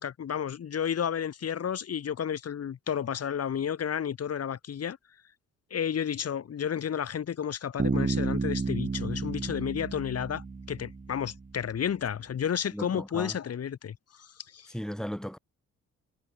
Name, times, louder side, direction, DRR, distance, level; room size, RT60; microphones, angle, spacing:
voice 1, 0.0-5.0 5.7-14.7, left 8 dB, 55° left, 3.7 m, -32 dB
Bass guitar, 7.8-11.5, right 4 dB, 25° right, 2.2 m, -31 dB
voice 2, 12.7-13.4 14.7-15.4, equal, ahead, 1.5 m, -36 dB
cardioid pair, 90°, 30 cm